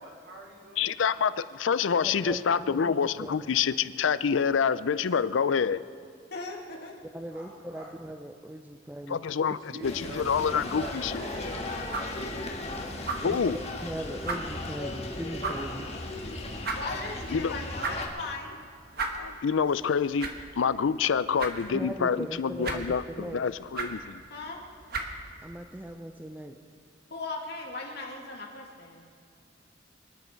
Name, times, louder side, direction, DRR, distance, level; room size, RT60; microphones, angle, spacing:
voice 1, 0.0-0.9 7.3-7.9 9.6-12.7 16.4-16.7 21.6-21.7, right 1 dB, 80° right, -3 dB, 3.8 m, -44 dB
voice 2, 0.8-5.8 9.1-9.6 9.8-11.1 13.2-13.6 17.3-17.5 19.2-20.3 20.6-24.2, left 6 dB, 80° left, 16 dB, 0.5 m, -27 dB
voice 3, 2.0-3.5 7.1-9.2 13.2-15.9 21.7-23.4 25.4-26.5, right 1 dB, 10° right, 5 dB, 0.5 m, -39 dB
voice 4, 6.3-7.0 16.7-18.6 24.3-24.6 27.1-29.1, left 3 dB, 55° left, -1 dB, 2.5 m, -38 dB
sound 1, 9.8-18.1, left 2 dB, 35° left, 1.6 m, -37 dB
sound 2, 11.6-26.0, right 3 dB, 55° right, 1.4 m, -39 dB
25.0 x 10.5 x 4.5 m, 2.3 s
head